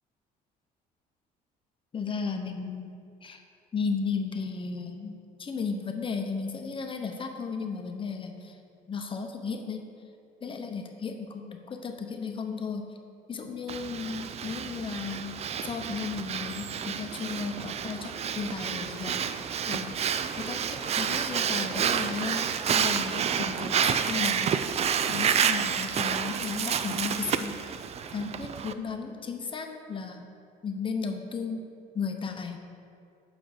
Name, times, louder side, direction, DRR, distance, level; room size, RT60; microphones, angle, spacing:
voice 1, 1.9-2.9 3.2-3.4 3.7-5.1 5.4-8.5 8.9-9.9 10.4-12.9 13.3-15.4 15.6-19.3 19.7-20.0 20.4-24.5 25.0-27.8 28.1-30.3 30.6-31.6 31.9-32.6, left 5 dB, 30° left, 4 dB, 0.9 m, -34 dB
Breathing, 13.7-28.7, right 7 dB, 40° right, 0.4 m, -29 dB
7.8 x 6.0 x 5.1 m, 2.5 s
cardioid pair, 110°, 17 cm